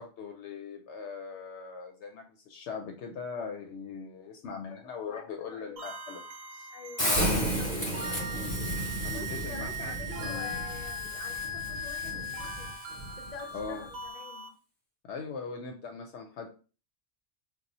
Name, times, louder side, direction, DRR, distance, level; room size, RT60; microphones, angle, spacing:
voice 1, 0.0-6.2 6.5-6.7 7.0-8.0 9.0-10.5 13.5-13.8 15.1-16.5, left 5 dB, 75° left, 2 dB, 0.8 m, -40 dB
voice 2, 5.0-5.9 6.7-7.1 7.4-7.7 8.0-8.4 9.1-12.7 13.2-14.5, left 4 dB, 45° left, 2 dB, 0.6 m, -46 dB
sound 1, 5.8-14.5, left 1 dB, 65° right, 0.8 m, -40 dB
Hiss, 7.0-13.1, left 1 dB, 25° left, 1.0 m, -36 dB
Thunder, 7.1-14.0, right 1 dB, 40° right, 0.9 m, -36 dB
2.6 x 2.3 x 4.1 m, 0.36 s
omnidirectional pair, 1.2 m